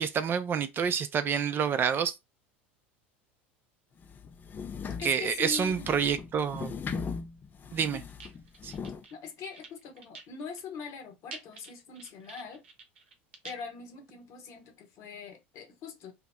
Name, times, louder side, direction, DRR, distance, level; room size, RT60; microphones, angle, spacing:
voice 1, 0.0-2.1 5.0-6.7 7.7-8.0 8.6-8.7, right 7 dB, 35° right, 0.4 m, -28 dB
sound 1, 4.0-9.0, left 5 dB, 30° left, 0.5 m, -39 dB
voice 2, 5.0-5.9 7.8-8.0 9.1-12.6 13.4-16.1, left 6 dB, 55° left, 1.1 m, -41 dB
sound 2, 8.1-9.2 9.5-10.6 10.9-11.0 11.3-13.6, right 4 dB, 80° right, 0.8 m, -47 dB
2.8 x 2.0 x 3.5 m
hypercardioid pair, 80°, 6 cm